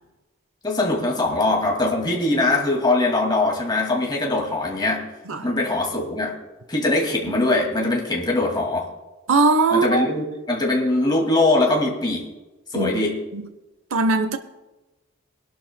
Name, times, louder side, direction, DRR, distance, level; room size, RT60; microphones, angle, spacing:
voice 1, 0.6-5.1 5.4-6.3 6.7-8.9 9.7-12.3 12.7-13.2, left 2 dB, 20° left, 2.2 m, -22 dB
voice 2, 9.3-10.1 12.7-13.0 13.3-13.4 13.9-14.4, right 3 dB, 90° right, 0.8 m, -20 dB
21.5 x 11.5 x 2.2 m
head